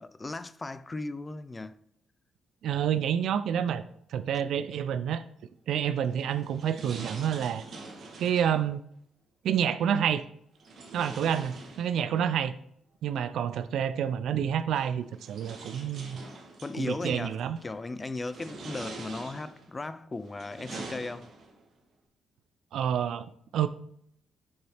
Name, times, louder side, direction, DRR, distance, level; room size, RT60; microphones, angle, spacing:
voice 1, 0.0-1.8 16.6-21.3, left 2 dB, 20° left, 0.4 m, -37 dB
voice 2, 2.6-5.2 5.7-7.6 8.2-8.8 9.4-10.2 10.9-12.5 13.0-16.2 16.8-17.6 22.7-23.7, right 9 dB, 75° right, 0.4 m, -28 dB
sound 1, 6.0-8.6 10.6-12.3 13.6-13.7 14.7-16.8 17.4-17.8 18.2-19.7 20.2-21.6, right 3 dB, 60° right, 2.0 m, -44 dB
7.1 x 4.1 x 4.8 m
cardioid pair, 100°, 0 cm